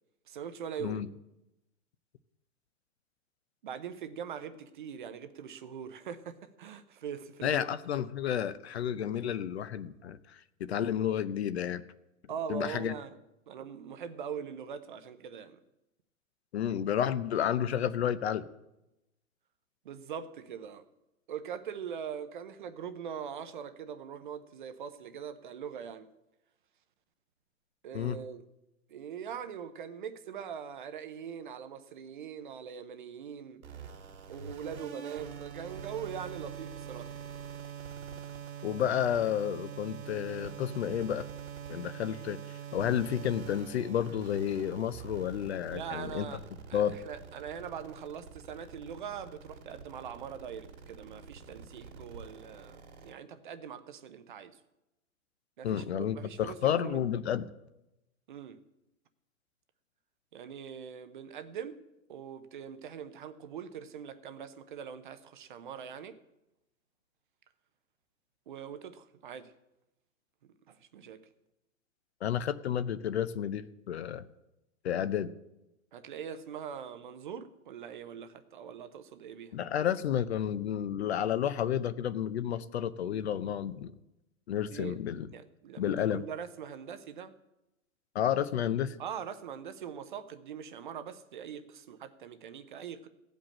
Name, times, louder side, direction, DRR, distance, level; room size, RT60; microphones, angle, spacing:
voice 1, 0.3-1.0 3.6-7.7 12.3-13.2 13.5-15.6 19.8-20.8 21.3-26.1 27.8-28.4 28.9-33.6 34.3-37.1 45.7-46.4 46.7-54.6 55.6-57.0 58.3-58.6 60.3-61.8 62.1-66.2 68.5-69.5 70.7-71.3 75.9-79.6 84.6-84.9 85.3-87.3 89.0-93.1, right 8 dB, 35° right, 0.7 m, -42 dB
voice 2, 7.4-11.8 12.5-12.9 16.5-18.5 27.9-28.2 38.6-41.3 41.7-42.4 42.7-46.3 46.7-47.0 55.6-57.4 72.2-74.3 74.8-75.3 79.5-84.0 84.5-85.3 85.8-86.3 88.1-89.0, left 9 dB, 50° left, 0.6 m, -31 dB
sound 1, 33.6-53.1, right 7 dB, 85° right, 2.3 m, -44 dB
16.0 x 5.3 x 8.6 m
hypercardioid pair, 170°, 42 cm